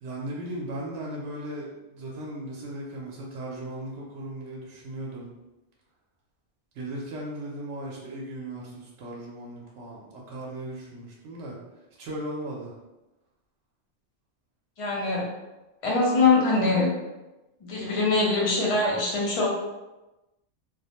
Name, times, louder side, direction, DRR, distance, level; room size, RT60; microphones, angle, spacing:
voice 1, 0.0-5.3 6.7-11.6 12.0-12.7, right 1 dB, 80° right, -3 dB, 0.9 m, -37 dB
voice 2, 14.8-15.2 15.8-16.9 17.6-19.5, left 3 dB, 40° left, -4 dB, 0.5 m, -23 dB
2.3 x 2.0 x 2.8 m, 1.0 s
omnidirectional pair, 1.2 m